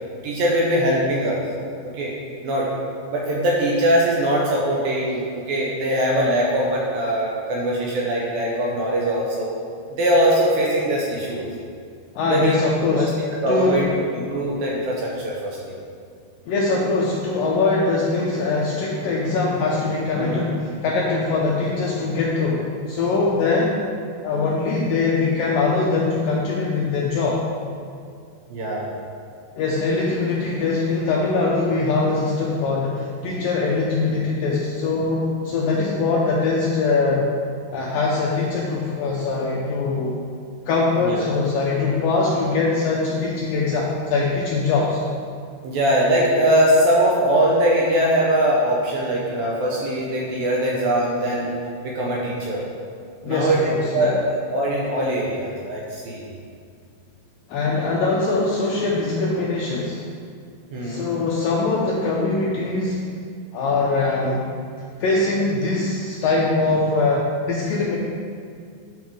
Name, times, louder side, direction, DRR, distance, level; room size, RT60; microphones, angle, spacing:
voice 1, 0.2-1.4 1.8-2.1 2.4-2.7 3.1-9.5 10.0-11.5 12.3-12.6 12.9-13.1 13.4-15.7 20.2-20.4 28.5-28.9 41.0-41.3 45.6-51.5 51.8-52.7 53.3-56.2 60.7-61.0, right 1 dB, 75° right, -3 dB, 2.3 m, -21 dB
voice 2, 12.1-13.2 13.5-13.9 16.5-23.9 24.2-27.4 29.6-37.3 37.7-40.2 40.7-45.0 53.2-54.1 57.5-60.0 60.8-63.0 63.5-64.4 65.0-68.0, left 3 dB, 85° left, -4 dB, 2.0 m, -22 dB
11.0 x 6.2 x 3.6 m, 2.2 s
omnidirectional pair, 4.9 m